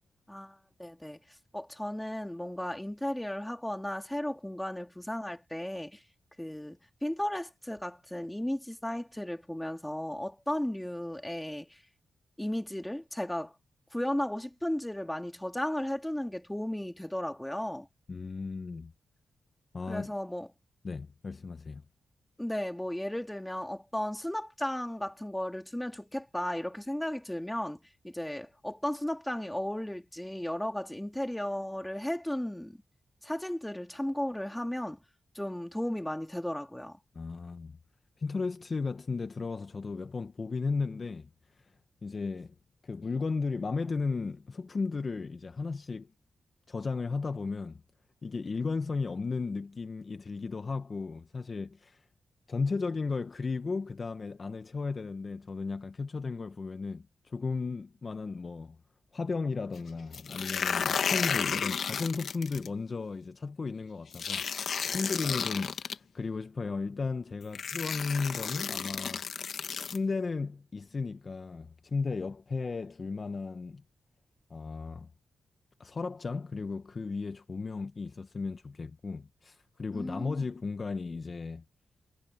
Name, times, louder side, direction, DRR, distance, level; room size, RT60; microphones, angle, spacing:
voice 1, 0.3-1.2 1.5-6.0 6.4-11.8 12.4-13.5 13.9-17.9 19.9-20.5 22.4-32.8 33.2-35.0 35.3-37.0 79.9-80.5, left 1 dB, 5° left, 2.2 m, -35 dB
voice 2, 18.1-18.9 19.7-20.1 20.8-21.8 37.1-37.7 38.2-41.3 41.6-41.7 42.0-42.5 42.8-46.1 46.7-47.8 48.2-52.0 52.5-58.8 59.1-69.3 69.8-73.8 74.5-75.1 75.8-81.6, left 4 dB, 35° left, 0.7 m, -35 dB
sound 1, 60.1-62.7 64.1-65.9 67.0-67.1 67.5-70.0, left 7 dB, 65° left, 1.1 m, -32 dB
wide cardioid pair, 150°, 0 cm